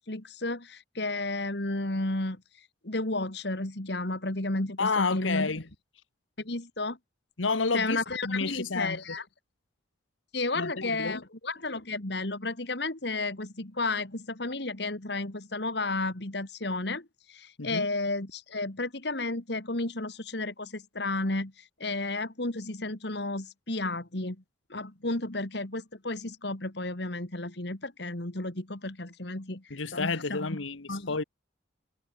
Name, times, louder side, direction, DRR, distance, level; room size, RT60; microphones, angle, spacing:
voice 1, 0.0-5.5 6.4-7.0 7.7-9.2 10.3-24.4 24.7-31.2, left 2 dB, 60° left, 2.3 m, -33 dB
voice 2, 4.8-5.6 7.4-9.0 10.6-11.2 17.6-17.9 29.7-31.2, left 4 dB, 85° left, 1.3 m, -30 dB
head